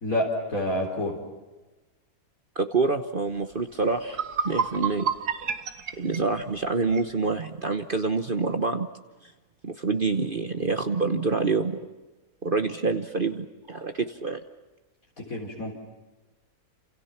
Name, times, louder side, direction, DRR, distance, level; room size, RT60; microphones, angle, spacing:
voice 1, 0.0-1.2 15.3-15.7, left 1 dB, 65° left, -1 dB, 4.4 m, -28 dB
voice 2, 2.5-5.1 6.0-8.9 9.2-9.3 9.6-11.8 12.4-14.4, right 4 dB, 40° right, 7 dB, 1.2 m, -27 dB
sound 1, 3.6-3.7 4.0-7.1, right 6 dB, 90° right, 1.9 m, -30 dB
29.5 x 28.0 x 5.9 m, 1.2 s
omnidirectional pair, 1.6 m